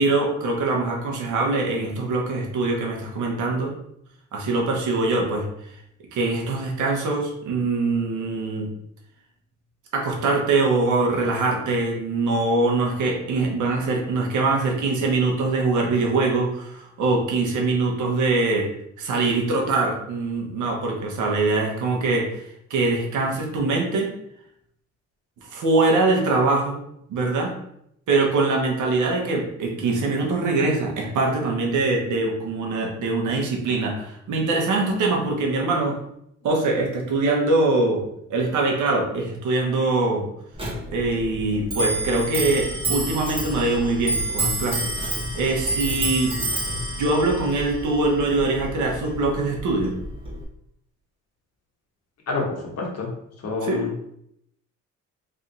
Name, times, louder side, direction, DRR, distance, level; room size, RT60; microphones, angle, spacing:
voice 1, 0.0-3.7 4.3-5.7 6.1-8.7 9.9-18.7 19.0-24.1 25.5-26.8 27.1-27.5 28.1-36.0 36.4-40.3 40.9-46.4 47.0-49.9 53.6-53.8, right 3 dB, 75° right, 0 dB, 1.1 m, -23 dB
Clock, 40.6-50.4, right 1 dB, 20° right, 1.2 m, -29 dB
voice 2, 52.8-53.1 53.4-53.9, left 4 dB, 55° left, -1 dB, 1.3 m, -26 dB
3.3 x 2.8 x 3.8 m, 0.74 s
cardioid pair, 90°, 30 cm